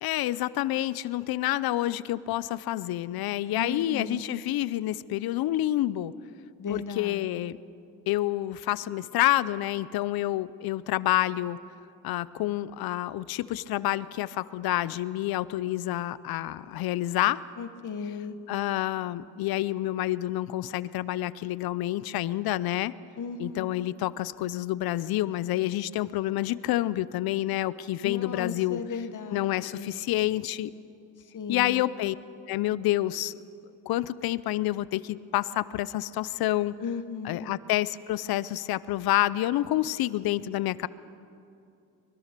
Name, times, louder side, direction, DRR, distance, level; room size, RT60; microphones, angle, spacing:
voice 1, 0.0-6.1 6.7-7.6 8.1-11.6 12.0-17.4 18.5-22.9 23.4-28.8 29.3-30.7 31.5-32.2 32.5-33.4 33.9-36.7 37.2-40.9, left 15 dB, 80° left, 18 dB, 0.7 m, -28 dB
voice 2, 3.6-4.2 6.6-7.2 17.6-18.3 23.2-23.7 28.0-29.9 31.3-31.9 36.8-37.5, left 5 dB, 55° left, 9 dB, 1.5 m, -35 dB
24.5 x 20.5 x 6.7 m, 2.6 s
supercardioid pair, 50°, 36 cm